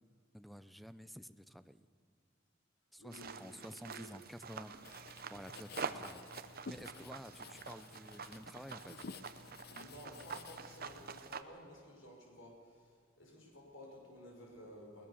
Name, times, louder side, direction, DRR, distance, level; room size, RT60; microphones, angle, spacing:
voice 1, 0.3-1.9 2.9-4.7 5.3-6.3 6.7-9.1, equal, ahead, 13 dB, 0.5 m, -51 dB
voice 2, 3.0-4.1 5.8-6.0 6.4-6.5 9.7-15.1, left 1 dB, 75° left, -1 dB, 5.5 m, -54 dB
sound 1, 3.1-11.4, right 5 dB, 50° right, 0.9 m, -47 dB
Writing, 4.8-11.2, left 4 dB, 50° left, 0.8 m, -53 dB
21.0 x 19.5 x 7.1 m, 2.1 s
head